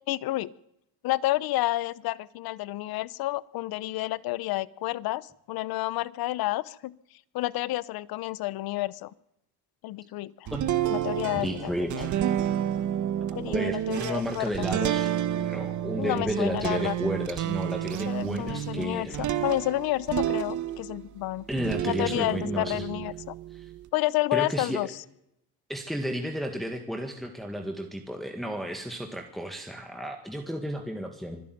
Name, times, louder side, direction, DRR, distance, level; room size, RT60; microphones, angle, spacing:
voice 1, 0.1-0.5 1.0-6.9 7.3-9.1 9.8-10.5 10.9-12.1 13.3-14.5 16.0-17.0 18.1-21.5 21.9-23.3 23.9-24.9, left 17 dB, 60° left, 20 dB, 0.9 m, -30 dB
sound 1, 10.5-21.1 21.5-23.8, right 11 dB, 45° right, 1.3 m, -30 dB
voice 2, 11.4-12.2 13.3-19.3 21.5-23.0 23.5-23.7 24.3-24.8 25.7-31.4, equal, ahead, 3 dB, 1.8 m, -33 dB
25.0 x 12.5 x 9.4 m, 0.81 s
cardioid pair, 145°, 40 cm